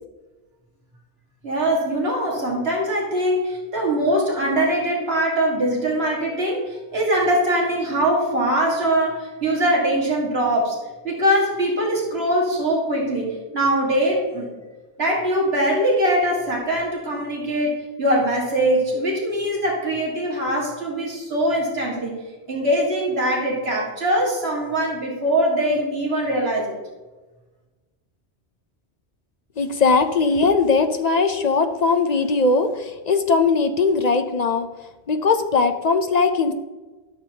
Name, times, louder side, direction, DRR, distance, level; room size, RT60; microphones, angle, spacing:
voice 1, 1.4-10.8 11.0-14.5 15.0-22.1 22.5-26.7, right 1 dB, 65° right, -3 dB, 2.1 m, -22 dB
voice 2, 29.6-34.7 35.1-36.5, left 4 dB, 50° left, 7 dB, 0.6 m, -19 dB
12.5 x 6.8 x 2.8 m, 1.2 s
omnidirectional pair, 1.1 m